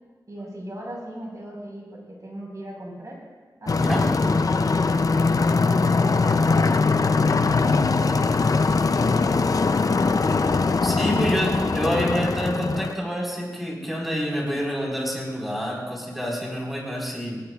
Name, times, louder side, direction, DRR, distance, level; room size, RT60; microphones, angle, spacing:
voice 1, 0.3-3.2 3.6-4.6 5.6-7.1 7.5-8.2 8.6-11.9, right 1 dB, 50° right, -2 dB, 4.7 m, -38 dB
sound 1, 3.7-12.9, left 4 dB, 55° left, 0.5 m, -21 dB
voice 2, 3.7-4.1 10.8-17.4, equal, ahead, -3 dB, 4.5 m, -27 dB
19.0 x 18.0 x 2.4 m, 1.5 s
wide cardioid pair, 95°, 7 cm